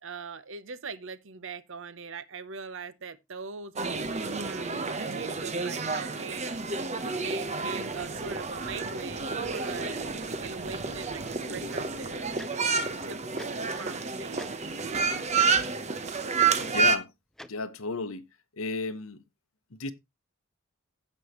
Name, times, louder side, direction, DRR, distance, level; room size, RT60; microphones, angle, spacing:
voice 1, 0.0-10.0 10.4-14.7, right 5 dB, 60° right, 0.8 m, -42 dB
sound 1, 3.8-17.0, right 4 dB, 30° right, 0.9 m, -30 dB
Tick-tock, 12.4-12.5 13.4-13.5 14.4-14.5 15.3-15.5 16.4-16.5 17.4-17.5, equal, ahead, 0.4 m, -43 dB
voice 2, 16.6-17.1 17.5-18.2 18.6-19.2 19.7-19.9, left 3 dB, 75° left, 0.9 m, -33 dB
16.0 x 5.5 x 3.0 m
head